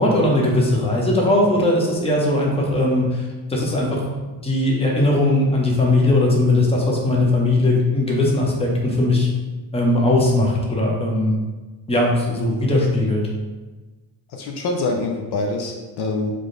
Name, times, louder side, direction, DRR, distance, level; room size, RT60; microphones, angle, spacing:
voice 1, 0.0-4.1 4.4-9.3 9.7-11.4 11.9-13.3, left 1 dB, 15° left, -2 dB, 0.8 m, -19 dB
voice 2, 14.3-16.3, left 3 dB, 60° left, 2 dB, 0.6 m, -25 dB
3.6 x 3.3 x 3.8 m, 1.2 s
cardioid pair, 130°, 45 cm